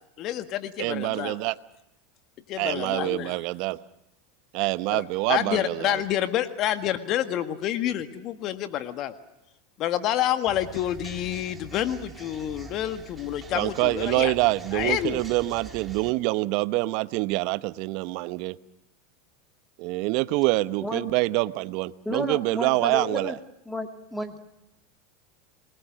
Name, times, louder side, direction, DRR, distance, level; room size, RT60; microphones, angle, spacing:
voice 1, 0.2-1.4 2.5-3.4 4.9-9.1 9.8-14.3 14.7-15.2, left 11 dB, 50° left, 11 dB, 1.7 m, -28 dB
voice 2, 0.8-1.5 2.6-3.8 4.5-6.0 13.5-18.6 19.8-23.4, right 20 dB, 60° right, 16 dB, 1.0 m, -26 dB
sound 1, 10.4-16.1, right 4 dB, 15° right, 4.1 m, -44 dB
voice 3, 22.0-23.4 23.7-24.4, left 1 dB, 5° left, 7 dB, 2.5 m, -32 dB
29.0 x 21.0 x 6.4 m, 0.85 s
hypercardioid pair, 100°, 0 cm